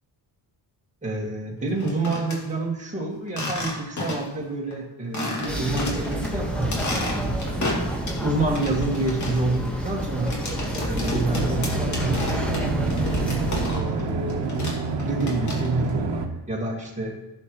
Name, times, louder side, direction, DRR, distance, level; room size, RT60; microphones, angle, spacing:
voice 1, 1.0-7.2 7.6-7.8 8.2-10.4 10.9-12.3 13.7-14.5 15.0-17.2, right 2 dB, 15° right, -2 dB, 2.0 m, -28 dB
sound 1, 1.7-2.4 3.3-4.4 4.7-4.8 5.1-6.3 6.6-8.2 8.6-14.0 14.3-15.9, left 2 dB, 40° left, 2.4 m, -32 dB
sound 2, 5.5-13.7, right 1 dB, 5° left, 1.4 m, -29 dB
sound 3, 11.2-16.3, right 4 dB, 75° right, 1.2 m, -28 dB
15.5 x 7.1 x 3.1 m, 1.0 s
wide cardioid pair, 160°, 42 cm